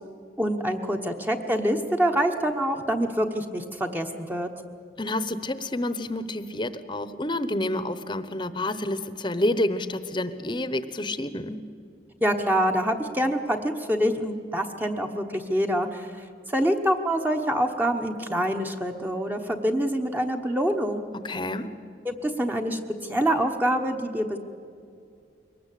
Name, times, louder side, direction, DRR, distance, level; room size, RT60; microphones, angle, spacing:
voice 1, 0.4-4.5 12.2-21.0 22.0-24.4, equal, 10° right, 4 dB, 1.0 m, -26 dB
voice 2, 5.0-11.6 21.2-21.7, left 1 dB, 25° left, 13 dB, 0.9 m, -29 dB
23.0 x 19.5 x 8.4 m, 2.4 s
head